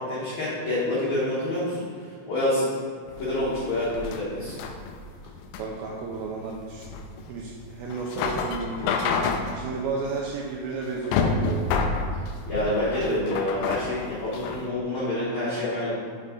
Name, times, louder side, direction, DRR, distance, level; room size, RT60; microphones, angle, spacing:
voice 1, 0.0-1.8 2.3-2.7 3.2-4.5 12.5-15.9, left 1 dB, 60° left, -10 dB, 2.0 m, -27 dB
sound 1, 3.1-14.7, left 4 dB, 90° left, 2.1 m, -29 dB
voice 2, 5.6-6.9 7.3-11.8, right 4 dB, 90° right, -2 dB, 2.2 m, -33 dB
6.4 x 5.5 x 3.7 m, 2.1 s
omnidirectional pair, 4.9 m